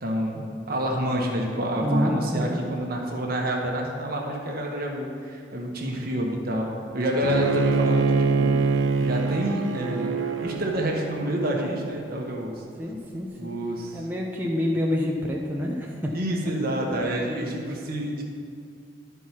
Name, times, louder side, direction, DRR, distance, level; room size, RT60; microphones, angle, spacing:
voice 1, 0.0-8.6 9.0-10.1 10.4-12.6 13.4-14.0 16.1-18.2, equal, 50° right, 0 dB, 1.3 m, -28 dB
voice 2, 1.8-2.6 12.8-13.5 13.9-16.1 16.4-16.5, equal, 10° right, -3 dB, 0.7 m, -27 dB
Bowed string instrument, 7.2-12.3, right 4 dB, 90° right, 0.6 m, -25 dB
11.0 x 4.7 x 5.7 m, 2.3 s
head